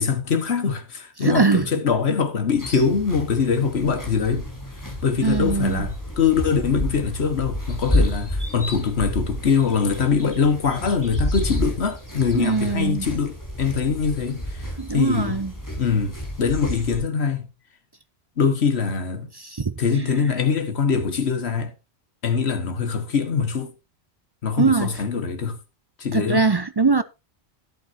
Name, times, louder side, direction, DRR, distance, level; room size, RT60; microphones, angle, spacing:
voice 1, 0.0-4.5 5.0-15.4 15.8-17.5 18.4-19.3 19.8-21.7 22.2-23.7 24.4-25.6 26.0-26.5, left 6 dB, 75° left, 1.7 m, -23 dB
voice 2, 1.2-1.7 5.2-5.9 12.3-13.1 14.8-15.5 19.4-19.7 24.6-24.9 26.1-27.0, right 4 dB, 35° right, 0.4 m, -21 dB
sound 1, 2.5-17.0, left 1 dB, 15° left, 5.9 m, -30 dB
12.5 x 11.0 x 2.7 m
omnidirectional pair, 1.1 m